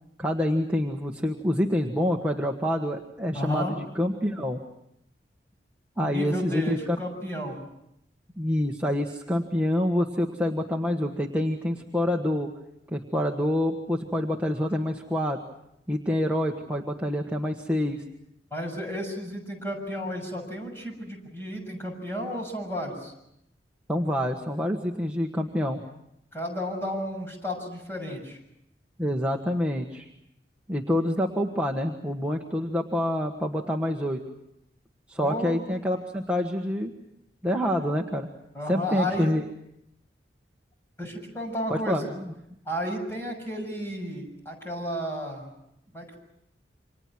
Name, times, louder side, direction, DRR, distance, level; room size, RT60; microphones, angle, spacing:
voice 1, 0.2-4.6 6.0-6.8 8.4-12.5 12.9-15.4 15.9-18.0 23.9-25.8 29.0-30.1 30.7-34.2 35.1-36.9 37.4-38.3 38.7-39.4 41.7-42.3, left 1 dB, 10° right, 1 dB, 1.4 m, -27 dB
voice 2, 3.3-3.8 6.0-7.6 18.5-23.1 26.3-28.4 35.2-35.6 38.5-39.3 41.0-42.1 42.6-45.5 45.9-46.2, equal, 15° left, 1 dB, 6.7 m, -32 dB
29.0 x 26.0 x 6.1 m, 0.79 s
head